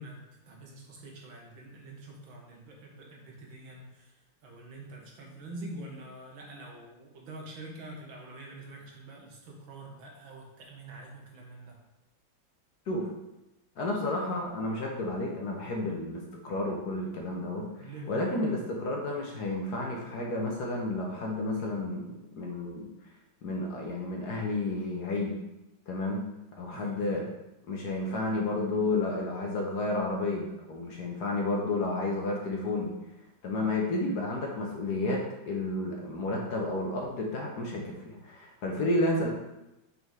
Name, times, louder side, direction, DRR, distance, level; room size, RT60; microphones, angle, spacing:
voice 1, 0.0-4.1 4.4-11.8 17.8-18.1 26.7-27.3, right 2 dB, 75° right, -1 dB, 1.9 m, -46 dB
voice 2, 13.8-22.9 23.4-25.3 25.9-26.2 26.5-27.3 27.7-32.9 33.4-39.3, left 2 dB, 60° left, 0 dB, 1.3 m, -31 dB
5.5 x 4.0 x 4.6 m, 0.96 s
omnidirectional pair, 2.2 m